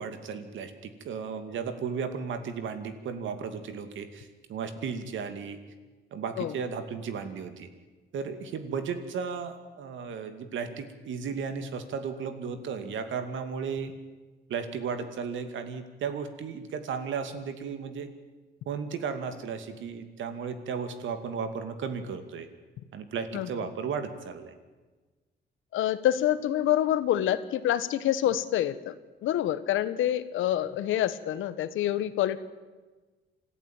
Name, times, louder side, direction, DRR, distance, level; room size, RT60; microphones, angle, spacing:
voice 1, 0.0-5.6 6.1-7.7 8.1-13.9 14.5-18.1 18.7-22.5 22.9-24.5, right 6 dB, 75° right, 8 dB, 2.5 m, -35 dB
voice 2, 25.7-28.9 29.2-32.4, left 12 dB, 85° left, 13 dB, 1.3 m, -27 dB
26.0 x 14.5 x 9.0 m, 1.3 s
cardioid pair, 90°, 20 cm